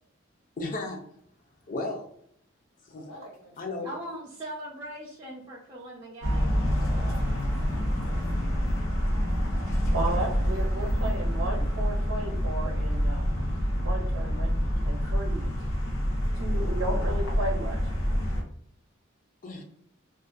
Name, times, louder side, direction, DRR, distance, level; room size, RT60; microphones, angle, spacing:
voice 1, 0.6-1.0 1.7-2.1 2.8-3.1 3.6-3.9 9.7-9.9 19.4-19.6, left 2 dB, 40° left, 0.5 m, -35 dB
voice 2, 2.9-3.9 6.6-8.2, equal, 65° left, 1.2 m, -50 dB
voice 3, 3.8-6.6, right 1 dB, 20° right, 0.4 m, -40 dB
sound 1, 6.2-18.4, equal, 85° left, 0.7 m, -27 dB
voice 4, 9.9-13.2 13.8-14.5 14.8-15.5 16.3-17.9, right 2 dB, 70° right, 0.5 m, -34 dB
2.4 x 2.2 x 2.5 m
head